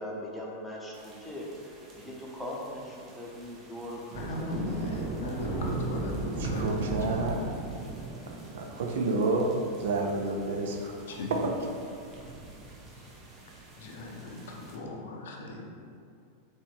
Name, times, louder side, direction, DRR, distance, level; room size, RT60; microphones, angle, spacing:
voice 1, 0.0-4.1 4.4-4.5 5.3-5.9, left 1 dB, 5° left, -4 dB, 0.8 m, -40 dB
sound 1, 0.9-14.8, right 2 dB, 25° right, 0.7 m, -39 dB
voice 2, 4.1-7.2 11.1-11.4 12.9-13.0 13.8-15.7, left 1 dB, 60° left, -1 dB, 0.6 m, -37 dB
voice 3, 6.4-7.5 8.5-11.2, right 2 dB, 55° right, 2 dB, 0.4 m, -30 dB
4.2 x 3.1 x 3.4 m, 2.5 s
figure-of-eight pair, 90°, 0 cm